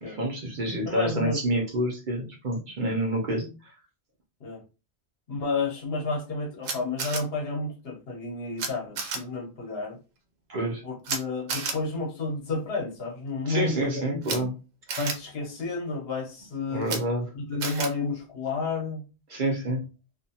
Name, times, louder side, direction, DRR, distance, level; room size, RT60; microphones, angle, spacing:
voice 1, 0.0-3.5 10.5-10.8 13.5-14.5 16.7-17.3 19.3-19.8, right 1 dB, 55° right, 0.7 m, -28 dB
voice 2, 0.9-1.6 4.4-4.6 5.3-10.0 10.8-14.5 15.0-16.9 17.3-19.0, left 3 dB, 65° left, 1.0 m, -31 dB
Camera, 6.6-7.2 8.6-8.7 9.0-9.2 11.0-11.2 11.5-11.7 14.2-14.4 14.9-15.1 16.8-17.0 17.6-17.9, right 5 dB, 85° right, 0.9 m, -30 dB
2.5 x 2.3 x 2.7 m
omnidirectional pair, 1.1 m